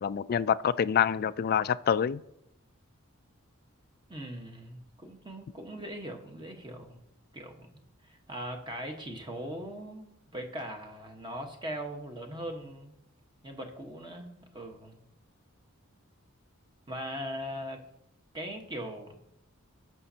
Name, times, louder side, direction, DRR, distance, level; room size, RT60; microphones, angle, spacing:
voice 1, 0.0-2.2, left 8 dB, 45° left, 0.3 m, -26 dB
voice 2, 4.1-7.0 7.3-12.9 13.4-15.0 16.9-17.8 18.3-19.1, equal, 20° right, 1.3 m, -40 dB
17.5 x 6.1 x 2.8 m
head